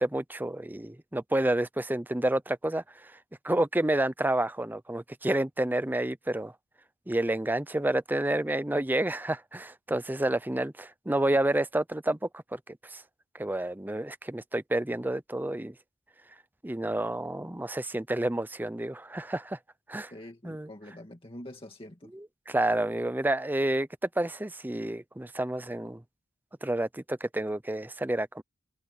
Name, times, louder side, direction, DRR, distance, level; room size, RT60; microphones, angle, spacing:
voice 1, 0.0-3.1 3.4-6.5 7.1-13.0 13.3-15.7 16.6-19.6 19.9-20.1 20.4-20.7 22.1-23.9 24.2-26.0 26.6-28.4, right 1 dB, 10° right, 0.6 m, -29 dB
voice 2, 20.1-22.1, left 1 dB, 25° left, 2.1 m, -45 dB
head